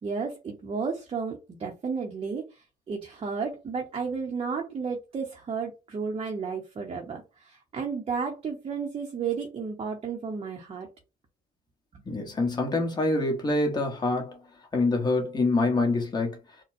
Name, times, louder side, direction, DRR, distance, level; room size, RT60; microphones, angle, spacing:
voice 1, 0.0-10.9 11.9-12.0, right 5 dB, 35° right, 0.8 m, -33 dB
voice 2, 12.1-14.4 14.7-16.4, left 2 dB, 25° left, 1.2 m, -25 dB
4.2 x 2.2 x 2.6 m
cardioid pair, 110°, 17 cm